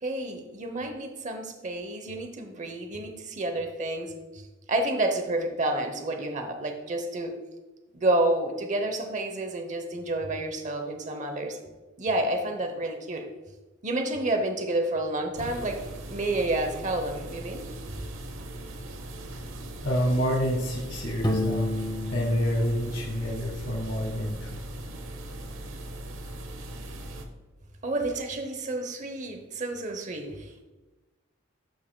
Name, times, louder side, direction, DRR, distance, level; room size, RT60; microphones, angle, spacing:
voice 1, 0.0-7.4 7.9-11.6 12.0-13.3 13.8-15.8 16.1-17.6 27.8-30.7, right 2 dB, 40° right, 5 dB, 0.8 m, -29 dB
sound 1, 15.4-27.2, right 1 dB, 80° right, 1.0 m, -39 dB
voice 2, 19.8-21.7 22.1-24.6, equal, 60° left, -4 dB, 1.3 m, -28 dB
Piano, 21.2-24.0, left 1 dB, 20° left, 0.8 m, -32 dB
12.0 x 5.5 x 2.2 m, 1.2 s
head